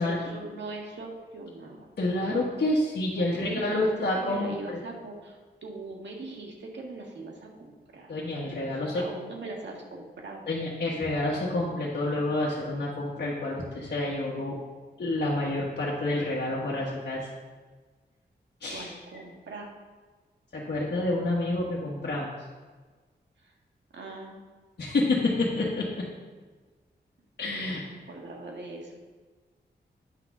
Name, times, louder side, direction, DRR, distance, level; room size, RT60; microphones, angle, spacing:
voice 1, 0.0-1.9 3.1-8.1 8.4-10.5 18.7-19.7 23.4-23.5 23.9-24.4 27.6-29.0, right 2 dB, 75° right, -1 dB, 1.7 m, -41 dB
voice 2, 2.0-4.8 8.1-9.0 10.5-14.6 15.0-17.3 18.6-18.9 20.5-22.3 24.8-26.1 27.4-27.8, left 2 dB, 60° left, -6 dB, 1.5 m, -28 dB
9.4 x 4.0 x 6.0 m, 1.4 s
cardioid pair, 60°, 18 cm